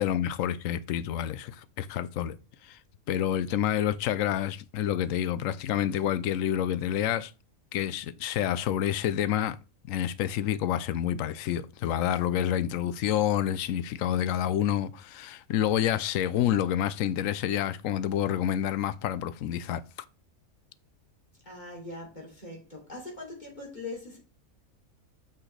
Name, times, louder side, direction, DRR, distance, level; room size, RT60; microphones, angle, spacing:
voice 1, 0.0-2.4 2.6-2.8 3.1-7.3 7.7-9.6 9.9-19.8, left 10 dB, 75° left, 1.0 m, -28 dB
voice 2, 21.4-24.2, left 2 dB, 30° left, 3.2 m, -41 dB
7.1 x 6.2 x 3.3 m
omnidirectional pair, 1.4 m